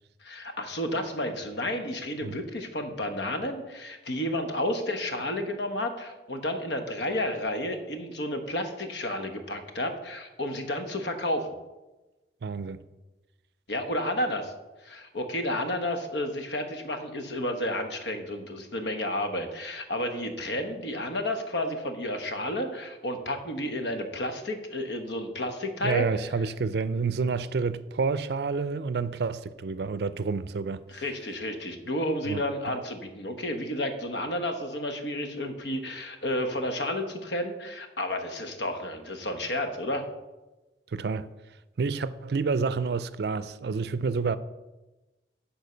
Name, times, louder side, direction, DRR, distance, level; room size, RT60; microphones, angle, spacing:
voice 1, 0.2-11.5 13.7-14.5 14.8-26.0 30.9-40.1, left 1 dB, 75° left, 1.1 m, -31 dB
voice 2, 12.4-12.8 25.8-31.0 32.2-32.7 40.9-41.3 41.8-44.4, right 4 dB, 65° right, 0.4 m, -29 dB
9.4 x 4.5 x 6.7 m
head